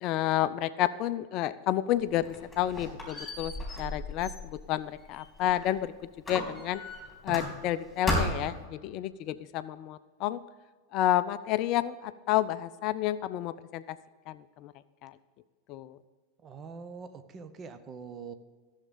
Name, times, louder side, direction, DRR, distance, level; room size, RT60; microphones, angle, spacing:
voice 1, 0.0-3.5 3.8-5.9 6.3-6.8 7.2-10.4 10.9-14.0 14.3-14.7 15.0-15.1 15.7-16.0, left 13 dB, 40° left, 14 dB, 0.4 m, -30 dB
Squeak, 2.0-5.8 6.2-7.8 8.1-8.6, left 1 dB, 5° left, 3.9 m, -35 dB
voice 2, 16.4-18.3, right 5 dB, 25° right, 9 dB, 0.9 m, -44 dB
14.5 x 7.3 x 5.3 m, 1.4 s
figure-of-eight pair, 90°, 0 cm